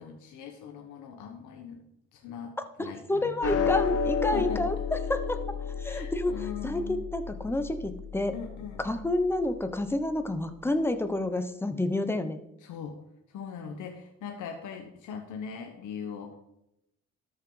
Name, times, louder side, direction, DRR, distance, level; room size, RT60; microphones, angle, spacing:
voice 1, 0.0-1.8 2.1-3.8 4.2-4.7 5.8-7.0 8.3-8.8 12.6-13.0 13.3-16.4, left 7 dB, 80° left, 3 dB, 1.1 m, -40 dB
voice 2, 2.8-5.4 5.8-8.4 8.8-12.4, left 1 dB, 10° left, 8 dB, 1.0 m, -29 dB
sound 1, 3.4-10.0, left 6 dB, 55° left, 1.0 m, -32 dB
13.0 x 6.2 x 3.9 m, 0.83 s
cardioid pair, 90°, 30 cm